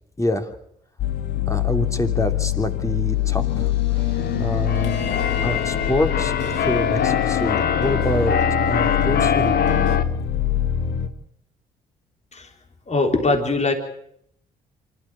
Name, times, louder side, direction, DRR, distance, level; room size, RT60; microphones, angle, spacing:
voice 1, 0.2-0.5 1.5-3.7 4.4-5.1 5.4-8.4 8.7-9.6, left 1 dB, 15° left, 5 dB, 3.1 m, -26 dB
sound 1, 1.0-11.1, left 10 dB, 80° left, 1.6 m, -24 dB
sound 2, 3.9-10.0, right 5 dB, 40° right, 2.4 m, -36 dB
Keyboard (musical), 4.1-10.0, left 8 dB, 60° left, 1.2 m, -23 dB
voice 2, 12.9-13.7, left 3 dB, 40° left, 4 dB, 3.7 m, -21 dB
25.0 x 13.0 x 8.9 m, 0.71 s
supercardioid pair, 55°, 18 cm